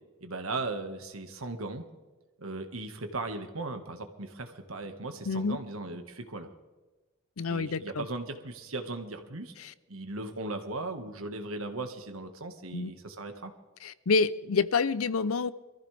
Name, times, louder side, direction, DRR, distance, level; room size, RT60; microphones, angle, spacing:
voice 1, 0.2-1.8 2.4-6.5 7.5-9.5 9.9-13.5, right 2 dB, 75° right, 6 dB, 1.7 m, -37 dB
voice 2, 5.3-5.6 7.4-8.1 9.6-9.7 12.7-12.9 13.8-15.5, left 4 dB, 75° left, 16 dB, 0.6 m, -28 dB
23.5 x 14.5 x 3.4 m, 1.2 s
head